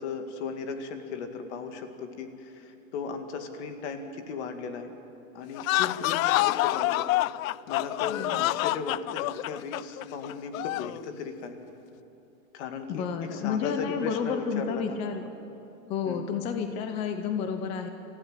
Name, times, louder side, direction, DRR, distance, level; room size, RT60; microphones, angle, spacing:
voice 1, 0.0-4.9 5.3-11.5 12.5-15.0 16.1-16.3, left 5 dB, 55° left, 6 dB, 2.3 m, -37 dB
sound 1, 5.5-11.0, left 17 dB, 75° left, 0.5 m, -27 dB
voice 2, 8.1-8.4 12.9-15.3 15.9-17.9, left 7 dB, 15° left, 7 dB, 0.5 m, -30 dB
27.0 x 14.5 x 8.1 m, 2.8 s
supercardioid pair, 165°, 41 cm